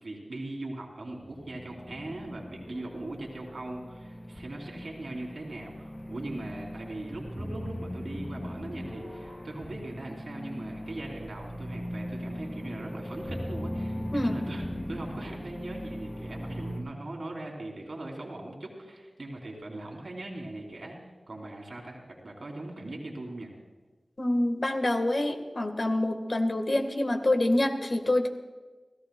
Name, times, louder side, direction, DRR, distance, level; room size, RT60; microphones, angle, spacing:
voice 1, 0.0-21.0 21.3-23.5, right 2 dB, 80° right, 0 dB, 2.8 m, -40 dB
sound 1, 1.1-16.8, equal, 30° left, 3.3 m, -39 dB
voice 2, 24.2-28.3, left 1 dB, 55° left, 5 dB, 1.4 m, -26 dB
29.5 x 14.5 x 2.2 m, 1.3 s
wide cardioid pair, 55°, 0 cm